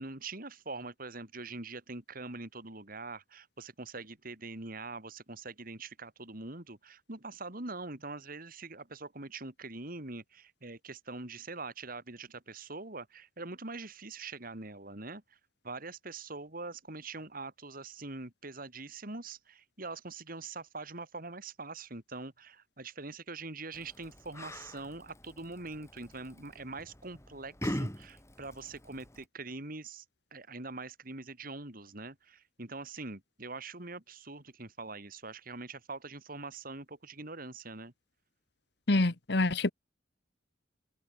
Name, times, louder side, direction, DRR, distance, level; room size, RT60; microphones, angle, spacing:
voice 1, 0.0-15.2 15.6-30.0 30.3-37.9, right 3 dB, 50° right, 3.4 m, -43 dB
Yell, 23.7-29.2, equal, 15° left, 7.8 m, -42 dB
voice 2, 38.9-39.7, left 2 dB, 65° left, 1.5 m, -26 dB
head